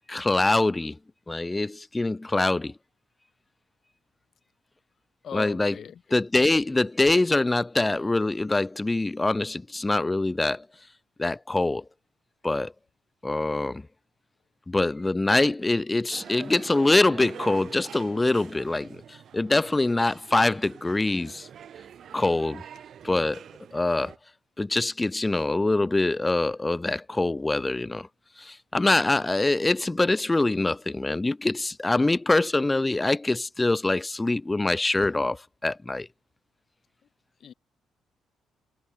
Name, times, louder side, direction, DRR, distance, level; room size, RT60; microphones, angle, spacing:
voice 1, 0.1-0.9 1.3-2.7 5.3-5.8 6.1-10.6 11.2-11.8 12.4-12.7 13.2-13.8 14.7-21.5 22.1-22.6 23.0-23.4 23.7-24.1 24.6-28.1 28.4-36.1, left 2 dB, 15° left, 3.4 m, -24 dB
voice 2, 5.2-6.0 37.4-37.5, left 8 dB, 60° left, 3.3 m, -38 dB
sound 1, 16.1-24.2, right 9 dB, 60° right, 6.4 m, -45 dB
cardioid pair, 90°, 0 cm